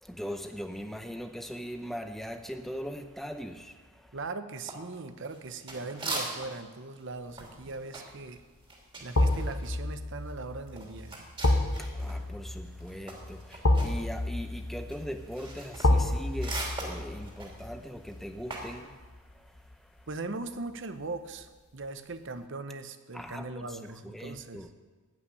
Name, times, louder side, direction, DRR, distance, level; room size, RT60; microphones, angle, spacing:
voice 1, 0.0-4.2 11.8-20.1 23.1-24.7, equal, ahead, 6 dB, 0.8 m, -40 dB
voice 2, 4.1-8.4 9.0-11.3 20.1-24.7, right 3 dB, 55° right, 10 dB, 0.8 m, -40 dB
sound 1, 4.7-6.7 7.0-12.2 12.5-18.8, right 2 dB, 20° right, 2.8 m, -41 dB
sound 2, 7.4-7.7 9.1-20.1 20.5-20.6, left 1 dB, 70° left, 1.2 m, -30 dB
15.5 x 5.9 x 9.8 m, 1.3 s
head